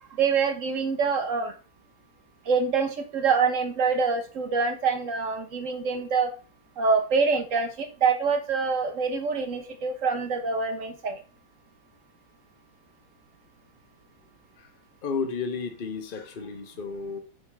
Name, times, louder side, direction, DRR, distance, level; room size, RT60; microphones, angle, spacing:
voice 1, 0.1-1.5 2.5-6.3 6.8-11.2, right 5 dB, 50° right, 1.1 m, -25 dB
voice 2, 15.0-17.2, left 5 dB, 35° left, 0.9 m, -32 dB
8.3 x 5.0 x 3.4 m
omnidirectional pair, 2.1 m